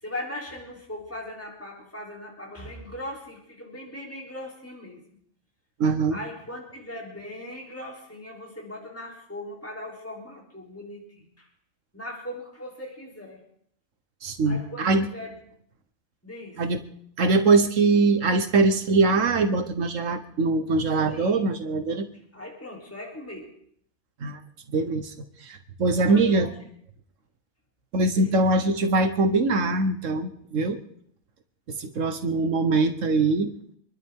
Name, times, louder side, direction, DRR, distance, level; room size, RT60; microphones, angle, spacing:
voice 1, 0.0-5.0 6.1-11.5 11.9-13.4 14.5-15.4 16.2-16.6 21.1-21.4 22.3-23.6 26.0-26.5 28.1-28.4, left 1 dB, 10° left, -2 dB, 3.6 m, -39 dB
voice 2, 5.8-6.2 14.2-15.1 16.6-16.8 17.2-22.0 24.2-24.4 24.7-25.1 25.4-26.5 27.9-30.8 31.7-33.5, right 3 dB, 80° right, 8 dB, 1.5 m, -22 dB
27.0 x 12.0 x 3.7 m, 0.63 s
omnidirectional pair, 1.3 m